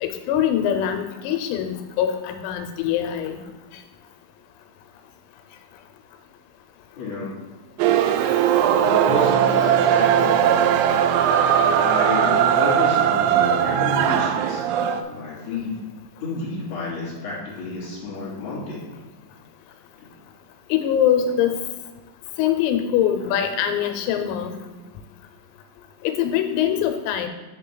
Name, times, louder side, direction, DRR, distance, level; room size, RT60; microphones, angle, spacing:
voice 1, 0.0-3.4 20.7-21.6 22.4-24.6 26.0-27.3, left 9 dB, 85° left, 7 dB, 3.4 m, -23 dB
voice 2, 7.0-7.3 8.8-10.8 11.1-11.4 11.8-14.6 15.1-15.8 16.2-18.9 20.0-20.1, left 3 dB, 30° left, -7 dB, 2.9 m, -30 dB
sound 1, 7.8-15.0, right 9 dB, 85° right, 3.2 m, -19 dB
8.1 x 6.4 x 3.9 m, 1.2 s
omnidirectional pair, 6.0 m